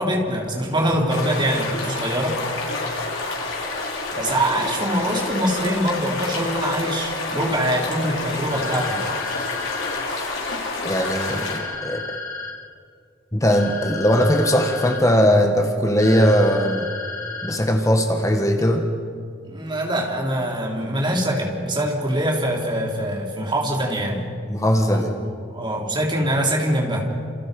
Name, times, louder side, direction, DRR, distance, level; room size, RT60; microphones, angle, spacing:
voice 1, 0.0-2.4 4.1-9.0 19.4-24.3 24.9-27.1, right 1 dB, 25° right, -1 dB, 3.8 m, -24 dB
sound 1, 1.1-11.6, left 3 dB, 85° left, 5.8 m, -28 dB
sound 2, 8.5-10.0 11.0-12.5 13.5-15.0 16.0-17.5, left 4 dB, 45° left, 4.8 m, -33 dB
voice 2, 10.8-12.2 13.3-16.9 17.4-18.9 24.5-25.1, equal, 15° left, 4 dB, 1.5 m, -19 dB
29.5 x 28.0 x 5.4 m, 2.2 s
head